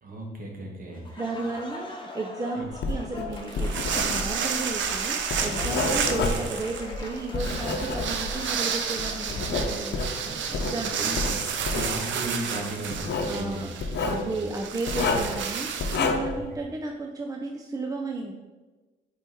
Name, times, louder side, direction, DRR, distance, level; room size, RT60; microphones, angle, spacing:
voice 1, 0.0-1.2 2.5-2.6 5.8-5.9 10.2-13.6 13.9-14.4 16.3-16.4, right 1 dB, 45° right, 0 dB, 1.6 m, -36 dB
Applause, 0.9-10.3, left 2 dB, 25° left, 1.2 m, -42 dB
voice 2, 1.2-10.0 10.5-11.1 13.3-13.7 14.0-18.3, right 3 dB, 20° right, 2 dB, 0.5 m, -33 dB
Writing, 2.7-8.5 9.0-10.8 11.1-11.9 12.9-13.4 13.8-14.2 14.9-15.4 15.8-16.4, left 3 dB, 60° left, 0.8 m, -29 dB
sound 1, 3.3-16.0, right 7 dB, 70° right, 0.6 m, -31 dB
5.0 x 4.6 x 4.5 m, 1.2 s
cardioid pair, 90°, 20 cm